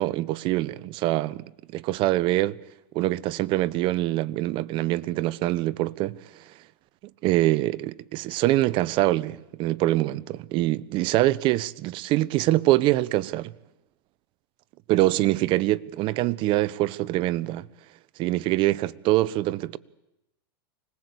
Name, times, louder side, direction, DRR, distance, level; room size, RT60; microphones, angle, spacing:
voice 1, 0.0-1.4 1.7-2.6 2.9-6.2 7.2-13.5 14.9-17.7 18.2-19.8, right 16 dB, 40° right, 0.9 m, -24 dB
25.5 x 19.5 x 8.4 m
supercardioid pair, 135°, 13 cm